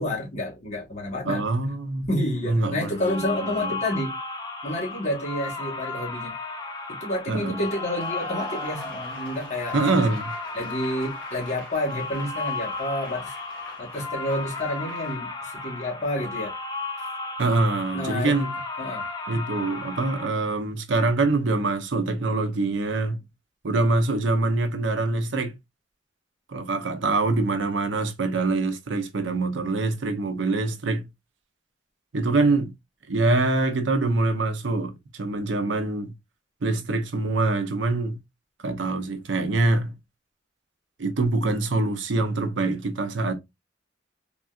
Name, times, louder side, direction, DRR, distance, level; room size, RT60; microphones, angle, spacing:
voice 1, 0.0-1.4 2.1-4.2 4.6-6.3 6.9-10.0 10.5-13.4 13.8-16.5 17.9-18.4 18.8-19.1, left 1 dB, 40° left, 1.2 m, -29 dB
voice 2, 1.3-2.1 2.4-3.7 7.3-7.6 9.7-10.3 17.4-18.5 19.3-23.2 23.6-25.5 26.5-31.1 32.1-32.7 33.1-36.1 36.6-38.2 38.6-40.0 41.0-43.3, right 3 dB, 75° right, 0.6 m, -24 dB
sound 1, 2.9-20.3, left 3 dB, 20° left, 0.6 m, -34 dB
Cheering / Applause / Crowd, 7.5-15.2, left 2 dB, 5° left, 1.5 m, -43 dB
3.6 x 2.3 x 2.4 m
head